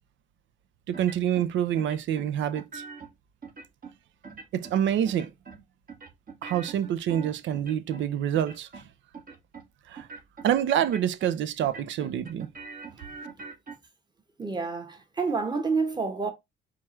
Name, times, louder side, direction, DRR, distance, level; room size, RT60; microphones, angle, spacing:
sound 1, 0.9-1.5 1.8-3.1 3.4-3.9 4.2-4.8 5.0-5.6 5.9-8.1 8.3-8.9 9.1-9.6 9.9-10.5 10.8-11.3 11.6-13.7, right 4 dB, 45° right, 1.4 m, -43 dB
voice 1, 0.9-2.8 4.5-5.3 6.4-8.7 9.9-10.1 10.4-12.5, right 10 dB, 70° right, 0.5 m, -27 dB
voice 2, 14.4-16.3, right 4 dB, 20° right, 1.2 m, -28 dB
4.6 x 2.4 x 4.3 m
cardioid pair, 90°, 20 cm